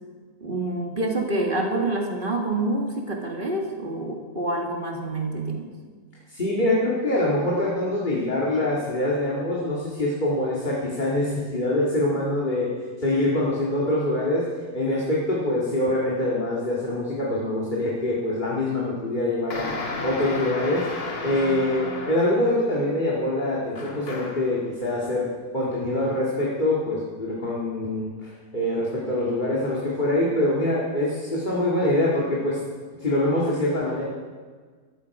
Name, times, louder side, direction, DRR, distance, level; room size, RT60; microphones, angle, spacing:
voice 1, 0.4-5.7, right 2 dB, 30° right, 1 dB, 1.9 m, -27 dB
voice 2, 6.3-12.7 13.0-14.5 14.7-19.7 20.0-20.9 21.2-25.3 25.5-32.6 33.0-34.0, left 1 dB, 25° left, -5 dB, 2.3 m, -24 dB
sound 1, 19.5-22.5 23.7-24.5, left 2 dB, 60° left, 2.5 m, -33 dB
13.5 x 13.0 x 4.9 m, 1.5 s
omnidirectional pair, 1.8 m